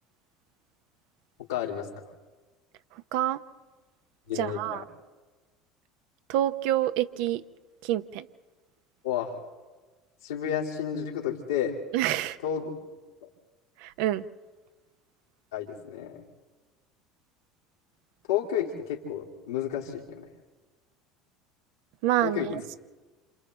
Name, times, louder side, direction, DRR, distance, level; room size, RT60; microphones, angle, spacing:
voice 1, 1.5-1.9 4.3-4.8 9.0-9.3 10.2-11.8 12.4-12.7 13.2-13.3 15.5-16.2 18.3-20.3 22.2-22.5, left 9 dB, 90° left, -2 dB, 3.0 m, -31 dB
voice 2, 2.9-3.4 4.3-4.8 6.3-7.4 7.8-8.3 11.9-12.4 13.8-14.3 22.0-22.8, right 13 dB, 70° right, 11 dB, 0.8 m, -27 dB
28.0 x 28.0 x 3.4 m, 1.3 s
hypercardioid pair, 85°, 2 cm